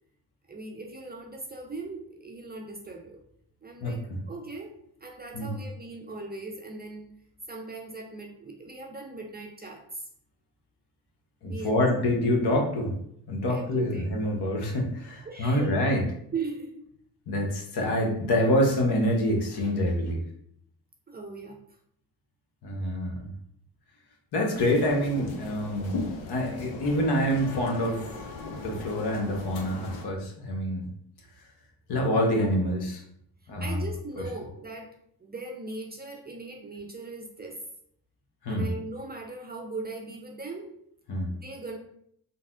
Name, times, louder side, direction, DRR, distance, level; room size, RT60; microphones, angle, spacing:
voice 1, 0.5-3.2 3.6-4.0 4.3-4.7 5.0-7.1 7.5-10.0 11.5-11.9 13.5-14.2 15.2-15.8 16.3-16.8 21.1-21.6 33.6-34.9 35.2-37.7 38.5-40.7 41.3-41.8, right 3 dB, 20° right, 1 dB, 0.5 m, -39 dB
voice 2, 3.8-4.2 5.3-5.6 11.4-13.0 13.3-16.0 17.3-20.2 22.6-23.3 24.3-28.1 28.6-30.9 31.9-33.0 33.5-33.8 38.4-38.7 41.1-41.3, left 1 dB, 55° left, 1 dB, 1.0 m, -26 dB
sound 1, 24.5-30.1, left 4 dB, 70° left, 0.7 m, -39 dB
3.9 x 2.0 x 2.4 m, 0.68 s
supercardioid pair, 55°, 46 cm